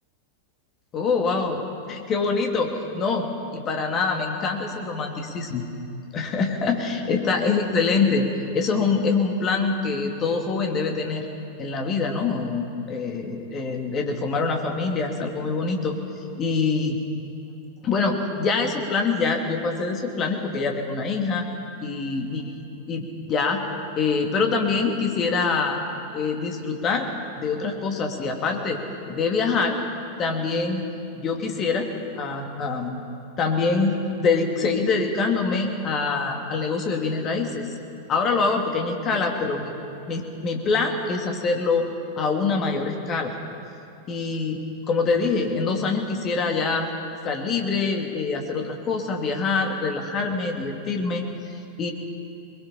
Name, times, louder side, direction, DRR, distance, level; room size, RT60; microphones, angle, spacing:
voice 1, 0.9-1.6 1.9-3.3 3.5-5.6 6.1-8.3 8.5-11.2 11.6-15.9 16.4-17.0 17.8-21.5 21.8-22.6 22.9-23.6 24.0-25.8 26.1-27.1 27.3-28.8 29.1-29.8 30.2-30.8 31.1-31.9 32.2-33.0 33.4-37.7 38.1-39.7 40.1-41.9 42.2-43.3 44.1-44.6 44.9-46.9 47.2-51.2 51.8-51.9, left 4 dB, 30° left, 2 dB, 2.6 m, -25 dB
22.0 x 21.5 x 5.7 m, 2.7 s
figure-of-eight pair, 90°, 0 cm